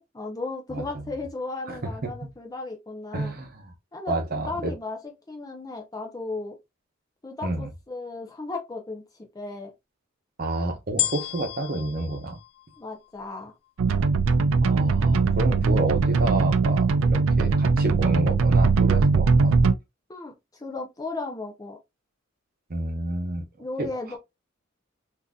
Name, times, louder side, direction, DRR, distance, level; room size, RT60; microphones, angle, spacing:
voice 1, 0.0-3.3 3.9-5.0 5.3-6.6 7.2-9.0 9.3-9.7 12.8-13.5 20.1-21.8 23.6-24.2, left 3 dB, 20° left, 0.5 m, -35 dB
voice 2, 3.1-3.7 4.1-4.7 7.4-7.7 10.4-12.4 14.6-19.7 22.7-23.4 23.8-23.9, right 2 dB, 50° right, 0.9 m, -29 dB
sound 1, 11.0-13.4 14.0-14.1, left 13 dB, 65° left, 0.3 m, -32 dB
sound 2, 13.8-19.7, right 4 dB, 85° right, 0.4 m, -20 dB
3.8 x 2.6 x 2.3 m
head